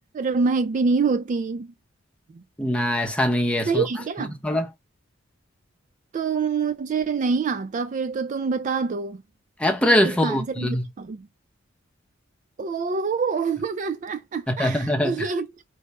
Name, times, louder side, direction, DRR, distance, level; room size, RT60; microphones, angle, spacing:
voice 1, 0.1-1.7 2.3-2.4 3.7-4.3 6.1-9.2 10.2-11.3 12.6-15.6, right 4 dB, 40° right, 0.3 m, -26 dB
voice 2, 2.6-3.9 4.2-4.7 9.6-10.8 14.6-15.3, equal, 5° left, 0.8 m, -22 dB
4.7 x 2.2 x 4.1 m
head